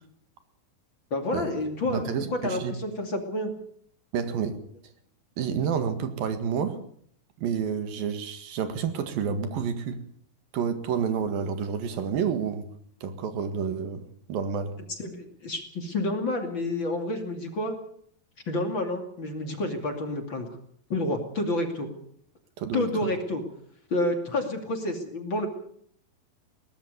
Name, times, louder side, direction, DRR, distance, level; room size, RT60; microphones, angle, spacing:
voice 1, 1.1-3.5 15.0-17.8 18.5-20.5 20.9-21.9 22.7-23.4 23.9-25.5, left 2 dB, 35° left, 2.9 m, -29 dB
voice 2, 1.9-2.7 4.1-4.7 5.4-6.8 7.4-10.0 10.5-12.7 13.0-14.0 14.3-14.8 22.6-22.9, right 7 dB, 75° right, 3.6 m, -29 dB
21.5 x 19.0 x 6.9 m
omnidirectional pair, 4.1 m